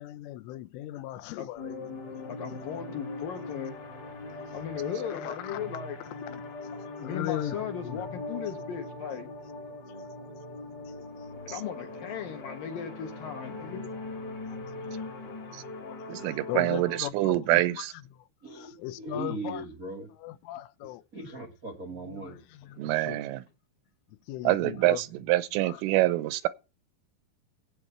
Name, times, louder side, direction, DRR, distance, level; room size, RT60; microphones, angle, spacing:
voice 1, 0.0-1.9 5.0-5.7 6.3-6.5 6.8-8.3 10.9-11.0 14.5-15.1 15.8-17.9 18.6-19.6 20.2-21.0 22.1-23.3 24.3-25.0 25.6-25.8, left 14 dB, 85° left, 3.3 m, -38 dB
sound 1, 1.6-17.0, left 2 dB, 35° left, 1.7 m, -41 dB
voice 2, 2.3-3.8 4.5-6.0 7.0-9.3 11.5-13.8, left 8 dB, 65° left, 2.4 m, -37 dB
voice 3, 16.1-17.9 22.8-23.4 24.5-26.5, right 17 dB, 85° right, 3.4 m, -26 dB
voice 4, 18.4-20.1 21.1-22.6, right 2 dB, 65° right, 0.8 m, -39 dB
17.5 x 8.7 x 4.4 m
omnidirectional pair, 5.7 m